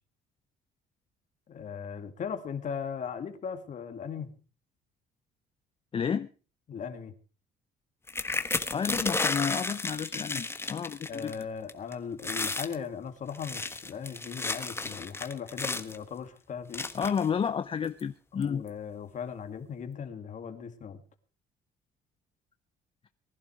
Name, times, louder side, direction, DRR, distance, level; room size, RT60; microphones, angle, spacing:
voice 1, 1.5-4.3 6.7-7.1 11.1-16.9 18.4-21.0, left 6 dB, 45° left, 2.3 m, -38 dB
voice 2, 5.9-6.3 8.7-11.3 16.9-18.6, left 7 dB, 30° left, 0.6 m, -31 dB
sound 1, 8.1-11.4 11.7-11.9 12.2-12.7 13.3-16.0 16.7-17.3 18.0-18.1 18.4-18.7, left 3 dB, 15° left, 1.4 m, -33 dB
19.5 x 11.0 x 4.8 m
cardioid pair, 110°, 17 cm